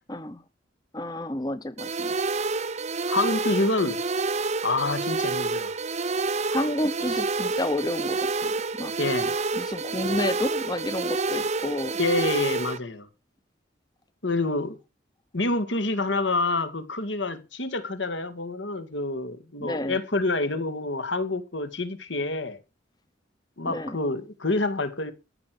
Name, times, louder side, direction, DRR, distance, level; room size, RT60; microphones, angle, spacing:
voice 1, 0.1-0.4 0.9-2.2 6.5-8.9 9.2-12.0 19.6-20.0 23.7-24.0, left 1 dB, 20° left, 0.7 m, -30 dB
sound 1, 1.8-12.8, right 3 dB, 35° right, 0.7 m, -28 dB
voice 2, 3.1-4.0 4.6-5.7 9.0-9.3 12.0-13.1 14.2-14.8 15.3-22.6 23.6-25.1, left 2 dB, 75° left, 2.1 m, -27 dB
14.0 x 6.6 x 6.0 m
head